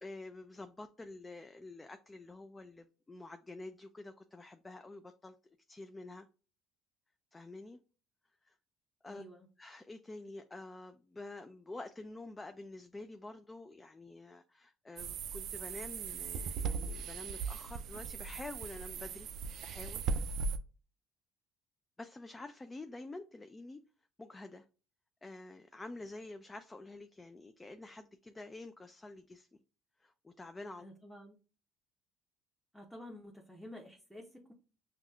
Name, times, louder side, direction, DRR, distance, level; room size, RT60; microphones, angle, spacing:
voice 1, 0.0-5.3 5.7-6.3 7.3-7.8 8.4-8.6 9.0-9.2 9.6-19.3 19.6-20.0 22.0-23.8 24.2-24.7 25.2-29.6 30.0-30.9, left 2 dB, 20° left, 0.3 m, -48 dB
voice 2, 9.1-9.5 30.8-31.4 32.7-34.5, left 1 dB, ahead, 0.7 m, -50 dB
sound 1, 15.0-20.6, right 5 dB, 65° right, 0.3 m, -38 dB
5.9 x 2.3 x 2.3 m
supercardioid pair, 90°, 0 cm